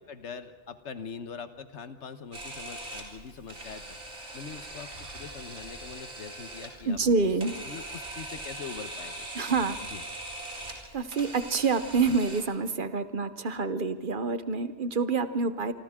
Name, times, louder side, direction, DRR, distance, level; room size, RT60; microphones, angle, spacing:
voice 1, 0.0-4.0 4.3-7.3 7.6-9.3 9.9-10.0, left 6 dB, 80° left, 10 dB, 1.4 m, -43 dB
Camera, 2.3-12.4, right 2 dB, 80° right, 3.7 m, -41 dB
voice 2, 6.9-7.5 9.3-9.8 10.9-15.7, right 4 dB, 50° right, 11 dB, 1.0 m, -27 dB
27.5 x 25.5 x 3.7 m, 1.5 s
omnidirectional pair, 1.2 m